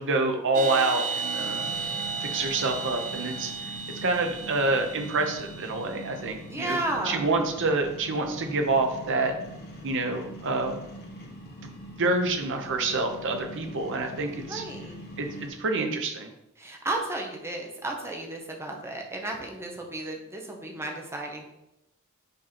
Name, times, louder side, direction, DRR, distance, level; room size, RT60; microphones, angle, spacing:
voice 1, 0.0-1.7 2.2-3.5 4.0-6.8 7.0-9.3 9.8-10.8 12.0-14.6 15.2-16.3, right 3 dB, 55° right, 4 dB, 0.8 m, -27 dB
sound 1, 0.5-6.1, right 5 dB, 35° right, 0.4 m, -34 dB
sound 2, 1.3-15.5, equal, 45° left, 1.3 m, -43 dB
voice 2, 6.5-7.3 14.5-14.9 16.6-21.5, right 2 dB, 10° right, 1 dB, 0.9 m, -33 dB
5.1 x 4.3 x 4.3 m, 0.88 s
head